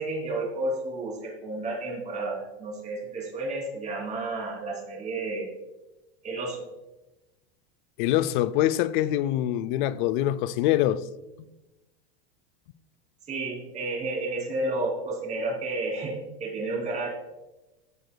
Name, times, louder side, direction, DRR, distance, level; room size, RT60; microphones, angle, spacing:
voice 1, 0.0-5.5 6.2-6.6 13.3-17.1, right 2 dB, 20° right, 2.8 m, -31 dB
voice 2, 8.0-11.0 11.4-11.5, left 13 dB, 50° left, 0.5 m, -24 dB
15.0 x 6.7 x 2.2 m
supercardioid pair, 155°, 32 cm